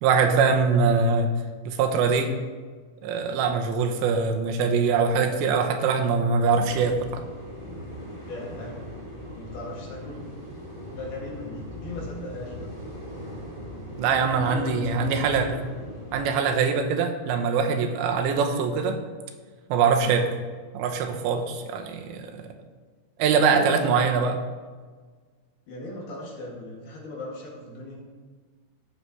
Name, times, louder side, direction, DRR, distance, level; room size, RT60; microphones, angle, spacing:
voice 1, 0.0-1.3 1.7-2.3 3.0-7.2 14.0-15.6 16.1-19.0 19.7-20.4 20.7-22.4 23.2-24.4, right 5 dB, 85° right, 5 dB, 3.1 m, -23 dB
sound 1, 6.5-16.2, equal, 20° right, 0.9 m, -39 dB
voice 2, 8.3-8.8 9.4-10.2 10.9-12.7 14.4-15.2 23.3-24.1 25.7-28.0, left 2 dB, 65° left, -4 dB, 3.9 m, -38 dB
16.5 x 6.5 x 3.1 m, 1.5 s
omnidirectional pair, 5.1 m